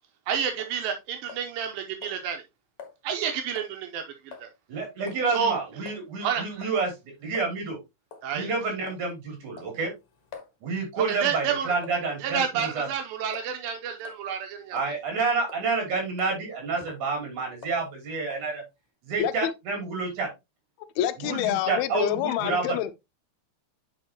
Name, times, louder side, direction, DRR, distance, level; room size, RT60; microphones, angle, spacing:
voice 1, 0.3-2.4 3.0-4.5 5.3-5.6 6.2-6.4 8.2-8.5 11.0-11.7 12.2-14.8, right 7 dB, 80° right, 2.4 m, -29 dB
sound 1, 0.6-0.8 1.3-1.7 2.0-2.2 2.8-3.0 3.6-3.8 4.3-4.5 5.1-5.3 5.9-6.0 6.6-6.8 7.3-7.5 8.1-8.3 8.9-9.1 9.6-10.5 11.1-11.3 11.8-12.2 12.6-12.8 13.3-13.5 14.0-14.2 14.8-15.2 15.5-15.7 16.2-16.4 16.8-17.1 17.6-17.8 18.3-18.5, left 6 dB, 60° left, 2.1 m, -45 dB
voice 2, 4.7-6.9 7.2-7.8 8.3-9.9 10.6-12.9 14.7-18.6 19.0-20.3 21.2-22.8, right 4 dB, 55° right, 4.3 m, -29 dB
voice 3, 19.2-19.5 21.0-22.9, left 12 dB, 85° left, 2.5 m, -27 dB
9.1 x 4.9 x 2.9 m
omnidirectional pair, 4.4 m